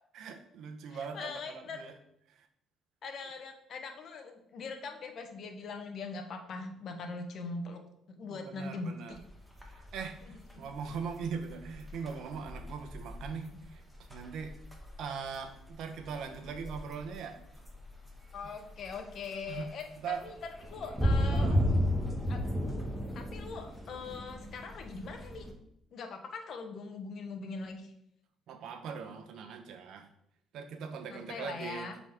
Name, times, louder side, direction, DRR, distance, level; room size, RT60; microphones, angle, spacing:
voice 1, 0.1-1.9 2.3-2.4 8.3-9.2 9.7-13.8 14.1-14.6 15.0-17.4 19.5-19.7 20.0-20.3 21.3-21.7 28.5-30.1 30.5-31.9, right 6 dB, 70° right, 7 dB, 0.9 m, -40 dB
voice 2, 0.9-1.8 3.0-7.8 8.1-9.2 10.2-10.7 18.3-21.6 22.3-22.4 23.1-25.5 25.9-27.9 31.1-32.0, left 4 dB, 60° left, 5 dB, 1.2 m, -41 dB
sound 1, 9.1-25.5, equal, 5° right, 1.8 m, -35 dB
7.5 x 4.1 x 3.6 m, 0.75 s
supercardioid pair, 75°, 0 cm